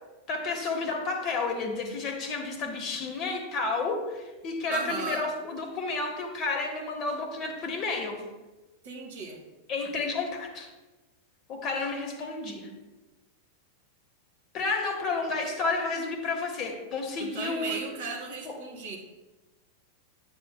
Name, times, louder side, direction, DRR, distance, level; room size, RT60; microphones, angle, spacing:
voice 1, 0.3-8.2 9.7-10.7 11.5-12.7 14.5-17.8 18.4-18.6, left 3 dB, 35° left, 3 dB, 1.3 m, -31 dB
voice 2, 4.7-5.3 8.8-9.4 17.2-19.0, right 4 dB, 55° right, 1 dB, 2.0 m, -35 dB
9.4 x 8.0 x 2.2 m, 1.1 s
figure-of-eight pair, 90°, 0 cm